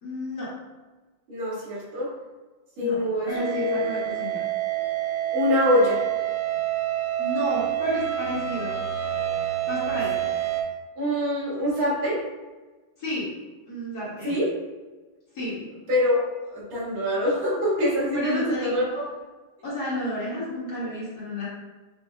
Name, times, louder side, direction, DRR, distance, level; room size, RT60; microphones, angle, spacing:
voice 1, 0.0-0.5 2.8-4.4 7.2-8.8 9.7-10.1 13.0-13.3 13.7-14.4 15.3-15.7 18.1-18.8 19.6-21.5, left 1 dB, 50° left, -8 dB, 1.8 m, -31 dB
voice 2, 1.3-2.1 2.8-3.9 5.3-6.0 11.0-12.2 14.2-14.5 15.9-16.2 16.5-19.0, left 1 dB, 75° right, -8 dB, 2.5 m, -24 dB
sound 1, 3.3-10.6, right 12 dB, 60° right, 1.1 m, -27 dB
6.5 x 2.7 x 2.3 m, 1.2 s
omnidirectional pair, 2.3 m